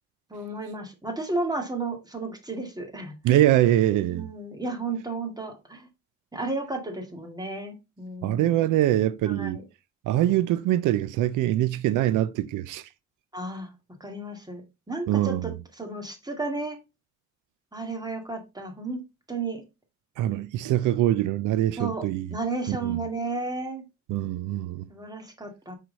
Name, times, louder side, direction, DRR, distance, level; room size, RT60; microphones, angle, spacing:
voice 1, 0.3-3.4 4.1-5.9 6.3-8.7 9.3-9.6 13.3-13.7 14.0-16.8 17.7-19.0 19.3-19.6 21.8-23.9 24.9-25.7, right 3 dB, 15° right, 2.1 m, -33 dB
voice 2, 3.2-4.3 8.2-9.6 10.1-12.9 15.1-15.5 20.2-22.3 22.7-23.0 24.1-24.9, right 13 dB, 85° right, 0.5 m, -23 dB
5.8 x 4.7 x 3.9 m
cardioid pair, 90°, 30 cm